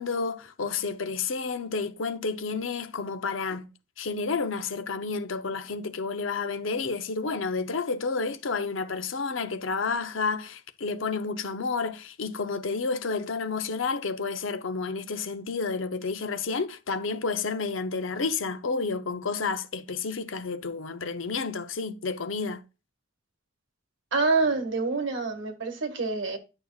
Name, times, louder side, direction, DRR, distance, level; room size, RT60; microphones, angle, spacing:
voice 1, 0.0-3.7 4.0-22.6, left 4 dB, 85° left, 0.7 m, -30 dB
voice 2, 24.1-26.4, right 3 dB, 75° right, 1.6 m, -26 dB
10.5 x 6.4 x 2.4 m
head